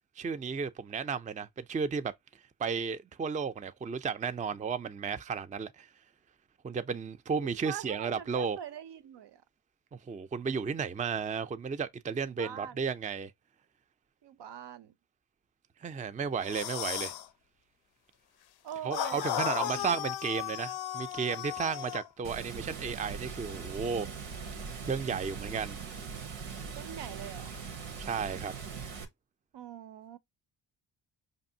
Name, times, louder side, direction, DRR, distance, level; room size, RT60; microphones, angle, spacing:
voice 1, 0.2-2.1 2.6-5.9 6.6-8.6 9.9-13.3 15.8-17.1 18.8-24.1 24.9-25.8 28.0-28.5, right 6 dB, 15° right, 0.4 m, -33 dB
voice 2, 7.4-9.4 12.2-12.8 14.2-14.9 18.6-20.0 26.7-27.5 29.5-30.2, right 10 dB, 60° right, 0.6 m, -43 dB
sound 1, 16.4-17.3 18.9-22.1, left 12 dB, 55° left, 0.5 m, -35 dB
Water, 22.2-29.0, right 5 dB, 90° right, 0.9 m, -41 dB
5.2 x 2.6 x 2.7 m
supercardioid pair, 50°, 48 cm